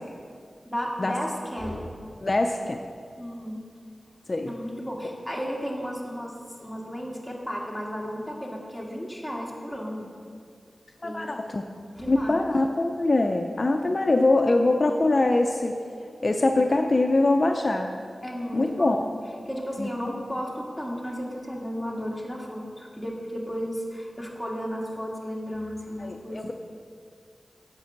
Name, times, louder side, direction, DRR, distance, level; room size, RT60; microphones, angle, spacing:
voice 1, 0.7-1.9 3.2-3.6 4.5-6.3 6.6-10.1 11.0-11.4 12.0-12.4 18.2-19.1 19.5-26.5, equal, ahead, -3 dB, 2.0 m, -34 dB
voice 2, 2.2-2.8 4.3-4.5 11.0-11.6 12.0-15.8 16.2-17.9 18.5-19.1 19.8-20.2 26.0-26.5, left 2 dB, 45° left, 4 dB, 0.5 m, -23 dB
8.6 x 5.3 x 7.3 m, 2.2 s
cardioid pair, 50°, 0 cm